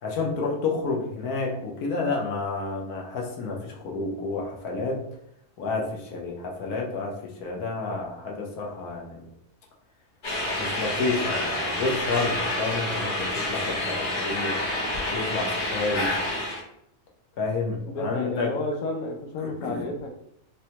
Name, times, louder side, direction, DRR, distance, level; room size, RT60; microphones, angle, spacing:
voice 1, 0.0-5.0 5.6-9.3 10.6-14.6 15.1-16.1 17.4-18.6 19.4-19.8, left 3 dB, 90° left, -1 dB, 1.3 m, -30 dB
sound 1, 10.2-16.6, left 1 dB, 55° left, 1.5 m, -28 dB
voice 2, 17.8-20.1, left 2 dB, 75° left, 2 dB, 1.0 m, -31 dB
4.8 x 2.1 x 2.8 m, 0.73 s
omnidirectional pair, 1.6 m